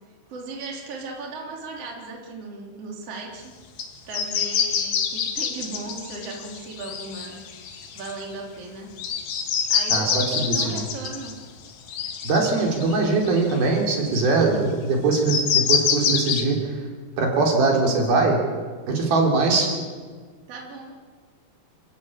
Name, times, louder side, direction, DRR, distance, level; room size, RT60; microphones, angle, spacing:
voice 1, 0.3-3.5 4.0-7.4 7.9-8.9 9.7-11.4 20.5-21.0, right 3 dB, 40° right, 0 dB, 3.9 m, -37 dB
sound 1, 3.8-3.9 4.1-8.3 9.0-13.6 14.1-14.2 15.1-16.4, left 7 dB, 70° left, 3.7 m, -26 dB
voice 2, 9.9-10.8 12.2-16.8 17.2-18.4 18.9-19.7, right 3 dB, 70° right, 0 dB, 5.5 m, -21 dB
29.0 x 15.0 x 8.9 m, 1.5 s
omnidirectional pair, 4.5 m